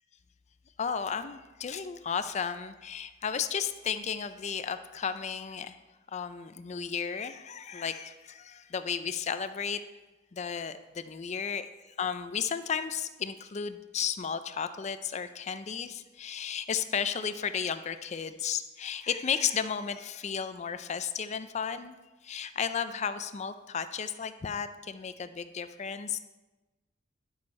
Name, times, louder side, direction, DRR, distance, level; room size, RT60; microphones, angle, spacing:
voice 1, 0.8-5.8 6.1-9.8 10.3-22.0 22.2-26.2, left 7 dB, 35° left, 11 dB, 0.4 m, -34 dB
11.0 x 6.4 x 4.2 m, 1.1 s
head